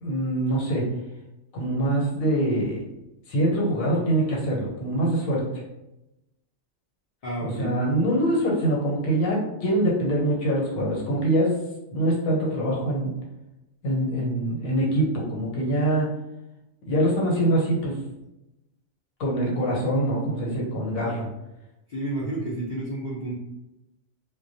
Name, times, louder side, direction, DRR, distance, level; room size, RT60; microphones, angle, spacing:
voice 1, 0.0-0.9 1.5-2.8 3.3-5.6 7.4-11.6 11.9-13.1 13.8-16.1 16.9-18.0 19.2-21.3, right 1 dB, 85° left, -3 dB, 1.2 m, -24 dB
voice 2, 7.2-7.7 21.0-21.2 21.9-23.4, right 1 dB, 60° left, -7 dB, 0.4 m, -31 dB
2.2 x 2.2 x 2.6 m, 0.93 s
omnidirectional pair, 1.4 m